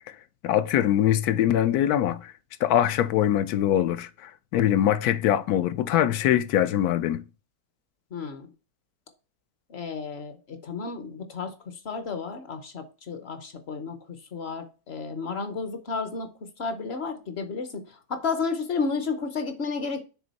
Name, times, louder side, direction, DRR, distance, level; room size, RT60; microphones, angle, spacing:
voice 1, 0.4-2.3 2.6-7.2, left 11 dB, 85° left, 1.1 m, -23 dB
voice 2, 8.1-8.5 9.7-14.0 14.3-20.0, left 4 dB, 50° left, 0.9 m, -32 dB
6.1 x 3.8 x 4.1 m
omnidirectional pair, 1.6 m